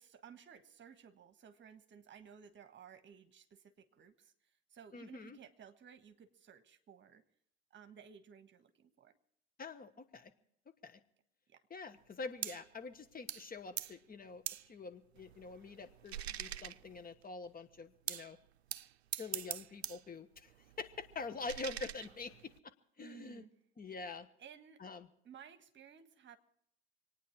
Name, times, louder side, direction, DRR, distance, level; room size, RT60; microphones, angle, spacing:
voice 1, 0.0-7.2 7.7-9.2 11.5-11.6 23.0-23.5 24.4-24.8 25.2-26.4, right 7 dB, 35° right, 9 dB, 1.5 m, -57 dB
voice 2, 4.9-5.4 9.6-10.3 10.8-11.0 11.7-18.4 19.2-20.5 20.8-23.4 23.8-24.3 24.8-25.1, left 4 dB, 30° left, 9 dB, 1.3 m, -46 dB
sound 1, 12.4-12.7 13.3-13.5 13.8-14.0 14.5-14.7 15.2-17.2 18.1-18.3 18.7-20.1 20.4-22.6, right 11 dB, 85° right, 0.5 m, -44 dB
26.5 x 9.5 x 4.7 m, 0.71 s
hypercardioid pair, 65°, 31 cm